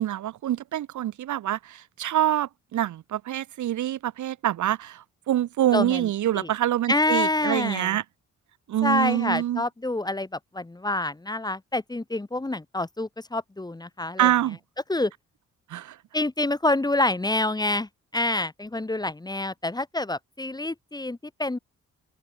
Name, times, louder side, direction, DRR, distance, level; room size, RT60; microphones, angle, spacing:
voice 1, 0.0-8.0 8.7-9.6 14.2-14.6 15.7-16.0, right 12 dB, 85° right, 2.4 m, -26 dB
voice 2, 5.7-6.5 6.9-8.0 8.8-14.3 14.9-15.1 16.1-21.6, left 2 dB, 15° left, 1.6 m, -27 dB
open air
cardioid pair, 95°, 29 cm